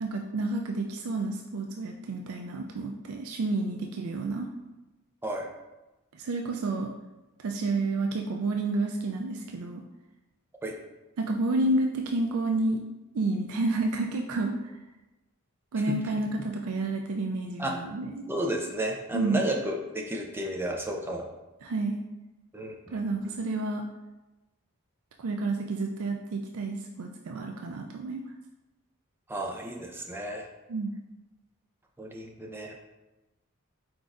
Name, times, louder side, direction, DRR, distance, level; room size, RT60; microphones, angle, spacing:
voice 1, 0.0-4.5 6.1-6.9 7.4-9.8 11.2-12.8 13.1-14.6 15.7-18.3 19.1-19.4 21.6-22.0 22.9-23.8 25.2-28.2 30.7-30.9, right 2 dB, 75° right, 2 dB, 0.4 m, -30 dB
voice 2, 18.3-21.3 22.5-23.3 29.3-30.5 32.0-32.8, right 1 dB, 10° right, 1 dB, 0.4 m, -33 dB
4.5 x 3.9 x 2.5 m, 1.0 s
head